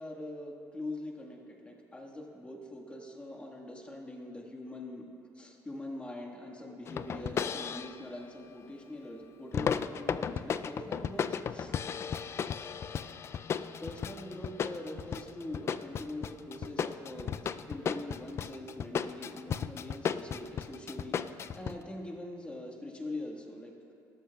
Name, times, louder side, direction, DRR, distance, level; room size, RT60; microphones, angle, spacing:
voice 1, 0.0-5.0 5.3-11.7 13.8-23.7, left 1 dB, 15° left, 1 dB, 1.5 m, -43 dB
sound 1, 6.9-8.0 9.5-21.7, left 7 dB, 40° left, 0.3 m, -35 dB
18.5 x 13.0 x 2.3 m, 2.6 s
cardioid pair, 110°, 7 cm